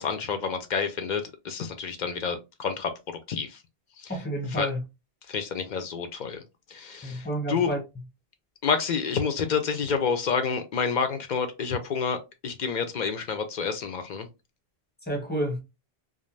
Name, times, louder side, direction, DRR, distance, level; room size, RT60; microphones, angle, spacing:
voice 1, 0.0-3.6 4.0-4.1 4.5-4.7 5.3-6.4 6.7-7.7 8.6-12.2 12.4-14.3, left 6 dB, 55° left, 0.6 m, -29 dB
voice 2, 4.1-4.8 7.0-7.8 15.0-15.6, equal, 10° left, 0.9 m, -29 dB
2.5 x 2.1 x 3.1 m
omnidirectional pair, 1.1 m